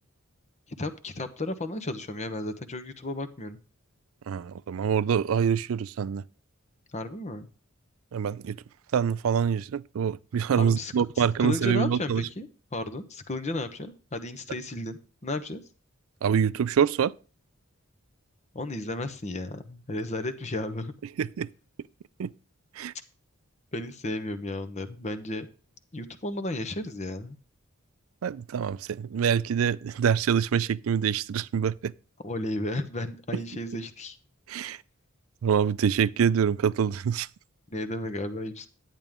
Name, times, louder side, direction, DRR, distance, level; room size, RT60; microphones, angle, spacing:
voice 1, 0.8-3.6 6.9-7.5 10.6-15.6 18.5-20.9 23.7-25.5 25.9-27.4 32.2-34.2 37.7-38.7, left 2 dB, 35° left, 1.0 m, -33 dB
voice 2, 4.3-6.2 8.1-8.6 8.9-12.3 16.2-17.1 21.2-21.5 22.2-22.3 22.8-22.9 28.2-31.9 34.5-34.8 35.4-37.3, right 7 dB, 75° right, 0.4 m, -25 dB
10.5 x 9.1 x 3.6 m
head